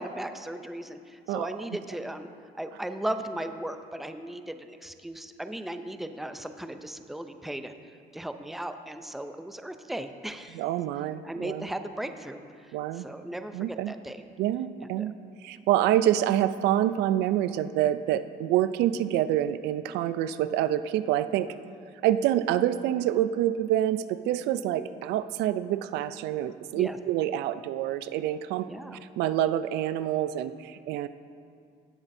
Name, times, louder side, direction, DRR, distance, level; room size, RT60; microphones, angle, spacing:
voice 1, 0.0-2.3 2.6-7.7 8.1-10.6 11.2-14.2 14.8-15.1 24.8-24.9 26.7-27.0 28.7-29.0, right 1 dB, ahead, 8 dB, 0.5 m, -37 dB
voice 2, 10.5-11.7 12.7-13.1 13.5-13.9 14.4-15.1 15.4-21.5 22.0-28.7 29.2-31.1, right 12 dB, 85° right, 13 dB, 0.4 m, -27 dB
17.0 x 8.0 x 2.7 m, 2.3 s
cardioid pair, 110°, 17 cm